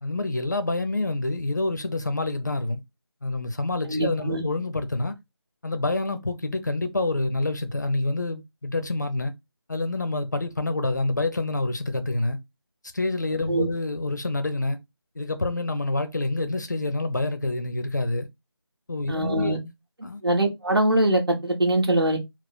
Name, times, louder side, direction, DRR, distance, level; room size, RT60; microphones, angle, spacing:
voice 1, 0.0-2.8 3.2-5.1 5.6-9.3 9.7-12.4 12.9-14.8 15.2-18.3 18.9-19.7 20.0-20.2, left 2 dB, 40° left, 0.7 m, -27 dB
voice 2, 3.9-4.4 13.5-13.7 19.1-19.6 20.2-22.2, right 1 dB, 60° right, 1.6 m, -22 dB
4.3 x 2.1 x 4.4 m
figure-of-eight pair, 165°, 14 cm